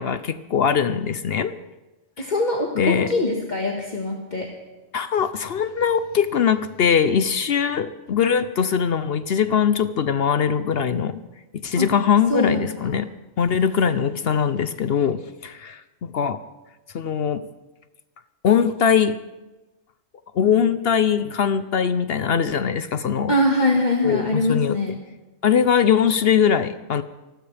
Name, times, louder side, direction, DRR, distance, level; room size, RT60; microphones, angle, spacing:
voice 1, 0.0-1.5 2.2-2.3 2.8-3.1 4.9-11.2 11.6-13.1 13.4-16.4 16.9-17.5 18.4-19.2 20.3-23.3 24.0-24.8 25.4-27.0, left 7 dB, 55° left, 12 dB, 0.8 m, -21 dB
voice 2, 2.2-4.4 11.8-11.9 12.3-12.9 23.3-24.9, left 1 dB, 35° left, -1 dB, 1.7 m, -23 dB
27.0 x 12.5 x 3.4 m, 1.1 s
omnidirectional pair, 1.4 m